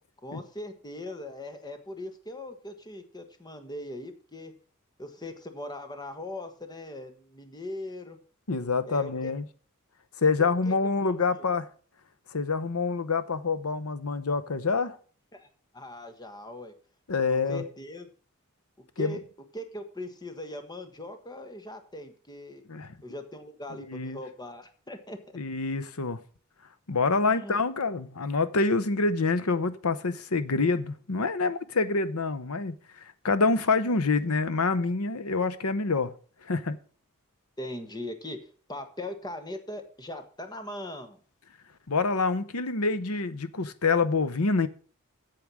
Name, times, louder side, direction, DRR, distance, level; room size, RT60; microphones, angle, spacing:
voice 1, 0.2-4.5 5.0-8.2 8.8-9.3 10.4-11.4 15.3-15.5 15.7-16.7 17.3-18.1 19.0-19.2 19.5-22.7 23.0-25.4 27.3-27.6 37.6-41.2, left 1 dB, 20° left, 1.4 m, -40 dB
voice 2, 8.5-9.5 10.2-11.7 12.3-15.0 17.1-17.6 19.0-19.2 22.7-23.0 23.9-24.2 25.3-26.2 26.9-36.1 36.4-36.8 41.9-44.7, left 4 dB, 70° left, 0.9 m, -26 dB
8.7 x 7.8 x 6.2 m
head